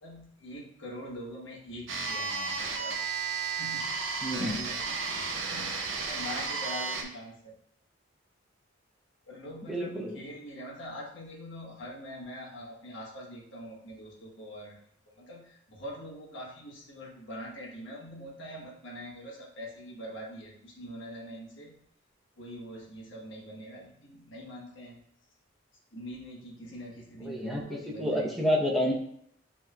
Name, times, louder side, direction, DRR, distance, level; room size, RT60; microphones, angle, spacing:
voice 1, 0.0-3.0 3.5-7.6 9.2-14.8 15.0-21.8 22.4-25.0 25.9-28.3, equal, 70° left, -2 dB, 1.2 m, -44 dB
sound 1, 1.9-7.0, right 4 dB, 70° right, 0.6 m, -33 dB
voice 2, 4.2-4.6 9.7-10.2 27.2-28.9, left 1 dB, ahead, -2 dB, 0.7 m, -29 dB
7.1 x 3.1 x 2.2 m, 0.69 s
head